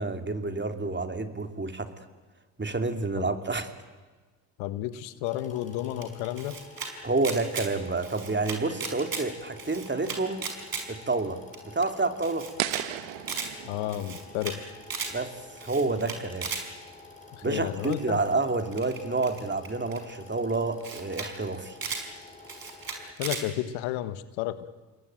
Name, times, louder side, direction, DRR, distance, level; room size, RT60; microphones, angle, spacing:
voice 1, 0.0-1.9 2.6-3.7 7.0-10.4 10.9-11.4 11.7-12.5 15.1-15.3 15.6-16.5 17.4-21.8, right 3 dB, 25° right, 6 dB, 3.2 m, -29 dB
voice 2, 4.6-6.6 13.6-14.6 17.4-18.2 23.2-24.7, left 13 dB, 80° left, 13 dB, 1.3 m, -32 dB
sound 1, 5.2-23.1, left 3 dB, 15° left, 6.6 m, -49 dB
Camera, 6.0-6.9 7.2-7.7 8.0-9.2 9.6-10.8 11.2-11.3 11.5-11.6 11.8-11.9 12.2-12.8 13.1-13.5 13.9-14.6 14.8-15.1 15.6-16.6 17.8-18.1 18.7-20.0 20.5-20.6 20.8-21.3 21.5-22.0 22.5-23.4, right 5 dB, 45° right, 5.8 m, -35 dB
sound 2, 12.6-15.6, right 15 dB, 85° right, 1.3 m, -36 dB
28.5 x 21.5 x 9.2 m, 1.3 s
hypercardioid pair, 55°, 47 cm